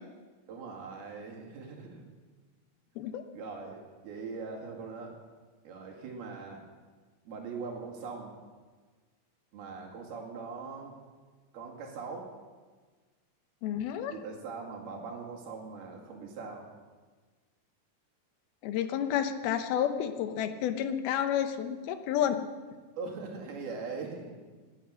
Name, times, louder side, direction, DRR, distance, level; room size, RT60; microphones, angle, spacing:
voice 1, 0.5-2.1 3.3-5.2 5.6-6.6 7.3-8.3 9.5-11.0 11.5-12.3 14.1-16.7 23.0-24.3, right 4 dB, 90° right, 0 dB, 4.3 m, -41 dB
voice 2, 13.6-14.1 18.6-22.5, left 9 dB, 85° left, 8 dB, 2.9 m, -30 dB
19.5 x 9.9 x 6.4 m, 1.4 s
omnidirectional pair, 4.3 m